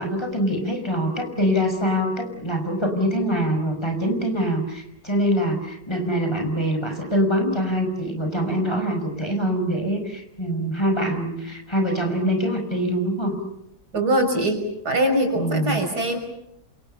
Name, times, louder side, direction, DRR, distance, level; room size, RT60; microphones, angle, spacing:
voice 1, 0.0-13.4 15.4-15.8, equal, 15° left, 5 dB, 6.0 m, -24 dB
voice 2, 13.9-16.2, right 1 dB, 90° right, 4 dB, 6.3 m, -22 dB
29.0 x 27.5 x 6.9 m, 0.78 s
omnidirectional pair, 1.7 m